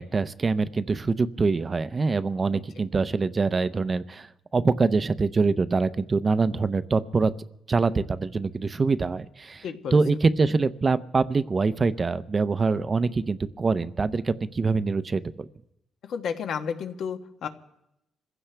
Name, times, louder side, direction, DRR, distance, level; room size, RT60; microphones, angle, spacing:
voice 1, 0.0-7.3 7.7-9.6 9.9-15.5, right 4 dB, 30° right, 13 dB, 0.7 m, -24 dB
voice 2, 9.6-10.0 16.0-17.5, left 7 dB, 70° left, 6 dB, 1.4 m, -32 dB
26.0 x 16.0 x 3.4 m, 0.82 s
cardioid pair, 90°, 0 cm